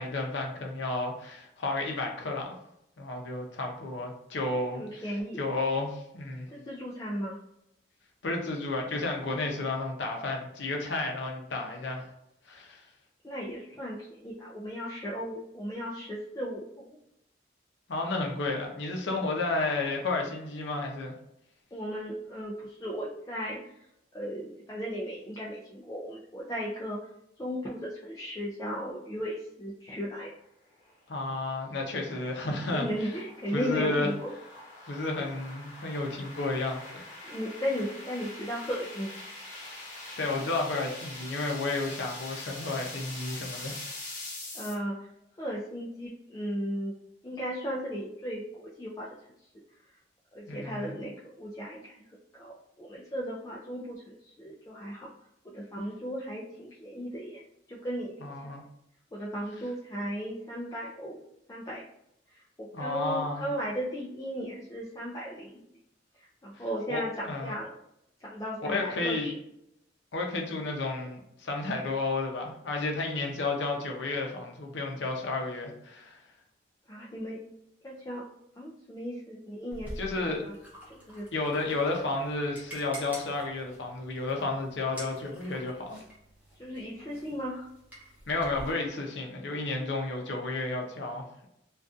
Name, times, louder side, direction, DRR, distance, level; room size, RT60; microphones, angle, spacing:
voice 1, 0.0-2.5 3.0-6.5 8.2-12.1 12.5-12.9 17.9-21.1 31.1-33.1 33.5-34.1 34.8-37.1 40.2-43.8 50.5-51.0 58.2-58.6 62.7-63.4 66.5-67.5 68.6-69.3 70.1-76.2 80.0-80.4 81.3-86.0 88.3-91.5, left 2 dB, 70° left, 1 dB, 0.6 m, -32 dB
voice 2, 4.7-5.4 6.5-7.4 13.2-17.0 21.7-23.6 24.1-27.0 27.4-30.3 32.7-34.3 37.2-39.1 44.5-45.0 45.4-46.9 47.2-49.1 50.3-51.1 51.4-52.0 52.4-55.1 55.4-57.4 57.7-58.1 58.4-58.5 59.1-61.2 61.5-61.8 62.6-65.6 66.4-67.7 68.2-69.4 76.9-77.4 77.8-78.2 78.6-80.5 80.9-81.3 86.6-87.7, equal, 20° left, -5 dB, 0.3 m, -36 dB
sound 1, 30.8-44.7, left 2 dB, 45° left, 1.0 m, -44 dB
sound 2, 79.7-88.7, equal, 10° right, 0.7 m, -47 dB
2.5 x 2.3 x 2.4 m, 0.79 s
head